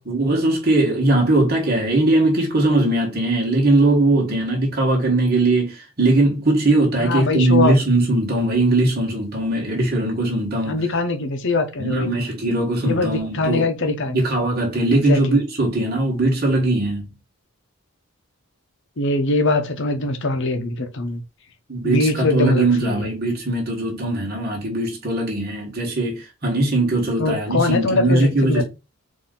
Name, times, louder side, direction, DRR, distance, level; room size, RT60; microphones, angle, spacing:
voice 1, 0.0-10.8 11.8-13.7 14.1-17.0 21.7-28.6, right 2 dB, 45° right, 1.4 m, -20 dB
voice 2, 7.0-7.7 10.6-12.1 12.8-14.2 14.9-15.4 19.0-21.2 21.8-23.1 27.2-28.6, left 3 dB, 55° left, 0.8 m, -22 dB
4.2 x 2.7 x 3.7 m
head